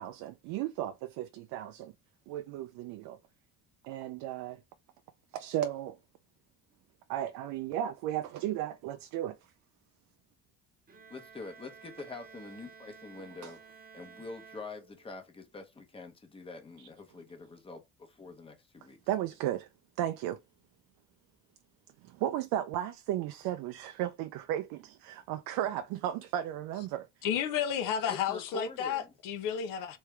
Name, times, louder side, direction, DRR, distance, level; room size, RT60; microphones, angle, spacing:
voice 1, 0.0-1.9 2.3-3.2 3.8-4.6 5.3-6.0 7.1-9.4 13.4-13.5 19.1-19.7 20.0-20.4 22.0-27.1, right 12 dB, 75° right, 0.5 m, -34 dB
Bowed string instrument, 10.9-15.3, right 6 dB, 25° right, 0.9 m, -54 dB
voice 2, 11.1-19.0 28.1-29.1, left 4 dB, 15° left, 0.9 m, -45 dB
voice 3, 27.2-30.0, left 8 dB, 65° left, 0.8 m, -32 dB
3.5 x 3.2 x 3.2 m
cardioid pair, 140°, 34 cm